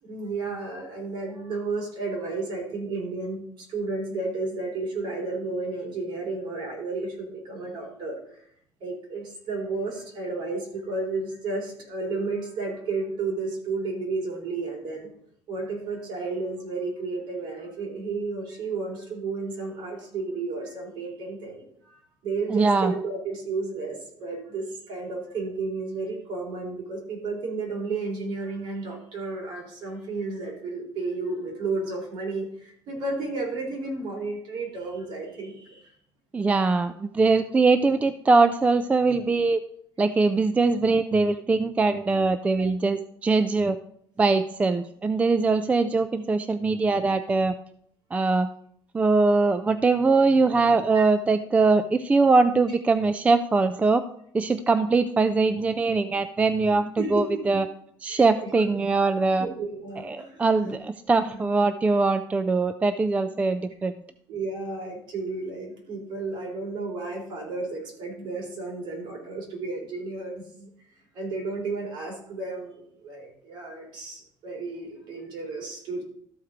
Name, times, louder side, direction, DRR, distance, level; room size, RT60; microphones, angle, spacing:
voice 1, 0.0-8.4 8.8-15.1 15.5-35.9 50.9-51.0 57.0-57.4 58.1-58.5 59.4-60.7 61.3-61.4 64.3-70.7 71.1-76.0, right 3 dB, 60° right, 0 dB, 3.5 m, -32 dB
voice 2, 22.5-22.9 36.3-39.6 40.0-43.8 44.2-47.5 48.1-48.5 48.9-54.0 54.3-57.7 58.0-59.5 60.0-63.9, right 3 dB, 15° right, 11 dB, 0.3 m, -22 dB
13.0 x 4.4 x 5.0 m, 0.66 s
cardioid pair, 150°, 9 cm